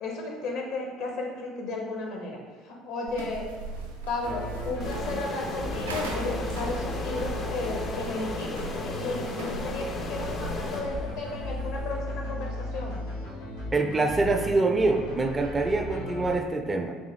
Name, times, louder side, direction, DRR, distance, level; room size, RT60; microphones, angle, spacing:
voice 1, 0.0-3.5 4.1-8.6 8.8-13.0, left 2 dB, 65° left, 0 dB, 0.7 m, -34 dB
sound 1, 3.1-12.0, right 3 dB, 85° right, 0.4 m, -39 dB
sound 2, 4.2-16.4, left 1 dB, 85° left, 1.5 m, -36 dB
sound 3, 4.8-11.5, left 4 dB, 40° left, 0.4 m, -36 dB
voice 2, 13.7-16.9, right 3 dB, 25° right, 5 dB, 0.4 m, -25 dB
3.5 x 3.1 x 3.1 m, 1.5 s
hypercardioid pair, 60°, 0 cm